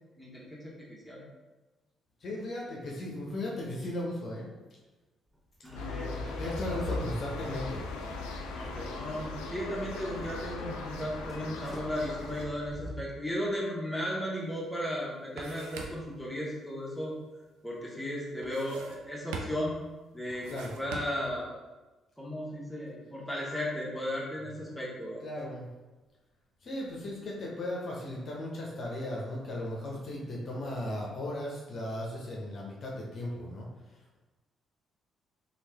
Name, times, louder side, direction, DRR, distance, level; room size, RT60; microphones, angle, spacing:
voice 1, 0.2-1.3 5.6-6.2 6.8-7.0 8.5-17.1 17.6-19.7 20.1-20.5 20.8-21.6 22.2-25.2, equal, 5° left, -5 dB, 1.2 m, -35 dB
voice 2, 2.2-4.5 5.8-7.9 20.5-20.7 25.2-25.7 26.6-33.7, left 1 dB, 55° left, -3 dB, 0.7 m, -36 dB
sound 1, 5.7-12.4, left 3 dB, 80° left, 0.3 m, -40 dB
sound 2, 5.7-12.9, left 1 dB, 25° right, 1.3 m, -42 dB
sound 3, 14.5-14.6 14.9-16.2 18.4-19.1 19.3-19.8 20.3-21.4, right 3 dB, 80° right, 0.4 m, -43 dB
3.1 x 2.4 x 3.4 m, 1.2 s
hypercardioid pair, 50°, 0 cm